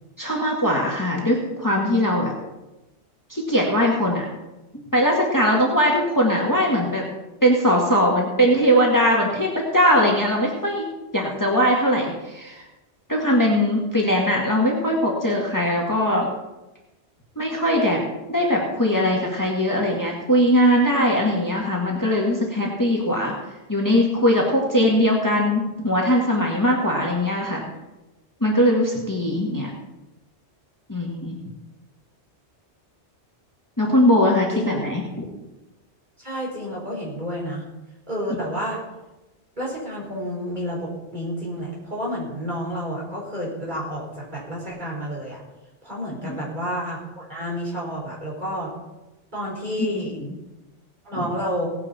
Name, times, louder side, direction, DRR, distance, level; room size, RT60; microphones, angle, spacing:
voice 1, 0.2-2.3 3.3-4.3 4.9-7.0 7.4-10.9 11.1-12.7 13.1-16.3 17.4-18.0 18.3-23.3 23.7-27.6 28.4-29.7 30.9-31.4 33.8-35.2 46.2-46.5 49.8-50.4 51.2-51.3, equal, 15° left, -2 dB, 1.8 m, -20 dB
voice 2, 36.2-37.7 38.1-38.8 39.6-45.4 45.8-48.7 49.3-50.1 51.0-51.7, equal, 40° right, -4 dB, 4.8 m, -30 dB
17.5 x 9.6 x 4.2 m, 1.0 s
omnidirectional pair, 1.2 m